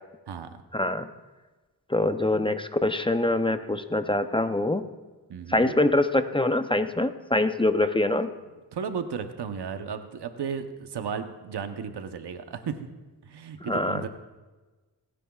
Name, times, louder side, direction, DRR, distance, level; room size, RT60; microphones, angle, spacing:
voice 1, 0.7-1.1 1.9-4.8 5.5-8.3 13.6-14.1, left 1 dB, 15° left, 9 dB, 0.6 m, -24 dB
voice 2, 5.3-5.7 8.7-12.8 13.2-14.1, right 6 dB, 85° right, 8 dB, 0.9 m, -34 dB
27.5 x 9.9 x 2.4 m, 1.2 s
wide cardioid pair, 85°, 39 cm